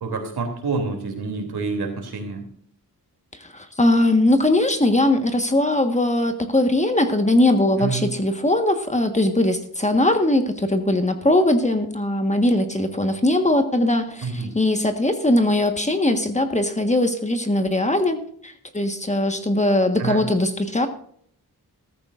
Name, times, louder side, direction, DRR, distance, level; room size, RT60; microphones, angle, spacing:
voice 1, 0.0-2.4 7.8-8.0 14.2-14.5 20.0-20.2, right 4 dB, 80° right, 4 dB, 3.1 m, -27 dB
voice 2, 3.4-20.9, left 1 dB, 20° left, 6 dB, 1.4 m, -20 dB
14.5 x 14.0 x 2.5 m, 0.62 s
wide cardioid pair, 90°, 38 cm